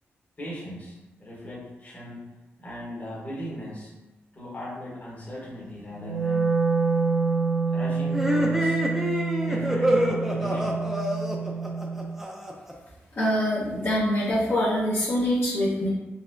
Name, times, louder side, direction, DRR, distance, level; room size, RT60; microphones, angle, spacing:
voice 1, 0.4-2.2 2.6-3.9 4.3-6.6 7.7-8.8 9.4-10.9, equal, 35° left, -6 dB, 1.3 m, -38 dB
Wind instrument woodwind instrument, 5.9-12.1, right 4 dB, 85° left, 1.1 m, -27 dB
sound 1, 8.1-12.7, equal, 5° right, 0.6 m, -26 dB
voice 2, 13.1-15.9, equal, 55° left, -8 dB, 1.2 m, -24 dB
4.1 x 3.4 x 2.6 m, 1.1 s
wide cardioid pair, 110°, 5 cm